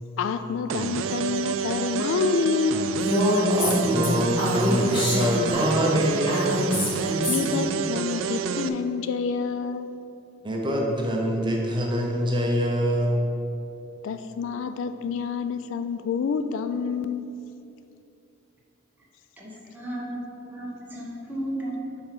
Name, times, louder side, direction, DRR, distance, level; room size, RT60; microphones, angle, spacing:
voice 1, 0.2-3.0 7.3-9.9 14.0-17.3, left 5 dB, 70° left, 10 dB, 0.3 m, -28 dB
sound 1, 0.7-8.7, right 6 dB, 85° right, 0.3 m, -29 dB
Female speech woman speaking, 3.0-7.6, left 1 dB, 25° left, 1.4 m, -25 dB
voice 2, 3.4-6.7 10.4-13.3, equal, 25° right, -1 dB, 0.8 m, -25 dB
voice 3, 19.4-22.0, right 1 dB, 10° right, -5 dB, 1.2 m, -34 dB
5.3 x 4.5 x 5.9 m, 2.6 s
head